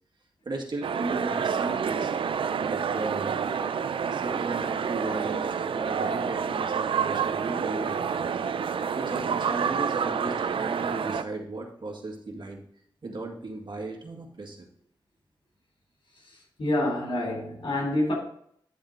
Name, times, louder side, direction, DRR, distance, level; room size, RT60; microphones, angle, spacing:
voice 1, 0.5-2.1 2.6-3.4 4.0-8.3 9.0-12.6 13.0-14.6, right 2 dB, 60° right, 1.9 m, -36 dB
sound 1, 0.8-11.2, right 7 dB, 90° right, 0.4 m, -28 dB
voice 2, 16.3-18.1, left 1 dB, 80° left, 3.6 m, -27 dB
10.0 x 3.7 x 5.2 m
cardioid pair, 55°, 9 cm